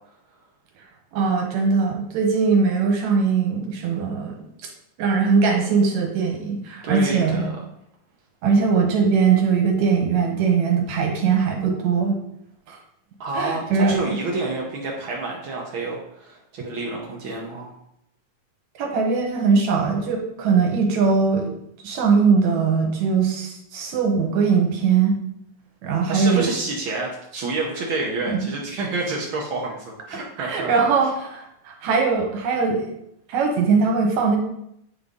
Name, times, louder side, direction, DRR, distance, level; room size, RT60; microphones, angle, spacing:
voice 1, 1.1-4.5 5.0-7.5 8.4-12.2 12.7-12.8 13.3-14.2 18.8-21.5 21.8-25.2 25.8-26.5 30.4-32.9 33.3-34.4, right 5 dB, 70° right, 1 dB, 2.3 m, -20 dB
voice 2, 6.8-7.5 13.2-17.7 26.1-30.7, right 3 dB, 85° right, -2 dB, 1.1 m, -28 dB
9.3 x 3.9 x 3.6 m, 0.77 s
omnidirectional pair, 3.6 m